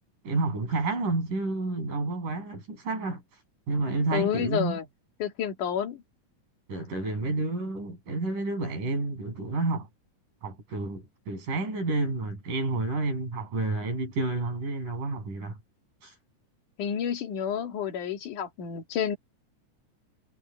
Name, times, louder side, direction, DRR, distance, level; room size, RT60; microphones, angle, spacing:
voice 1, 0.2-3.2 3.7-4.8 6.7-9.9 10.4-15.6 16.0-16.1, right 3 dB, 80° right, 9.3 m, -30 dB
voice 2, 4.1-4.9 5.2-6.0 16.8-19.2, left 8 dB, 75° left, 3.7 m, -30 dB
omnidirectional pair, 3.7 m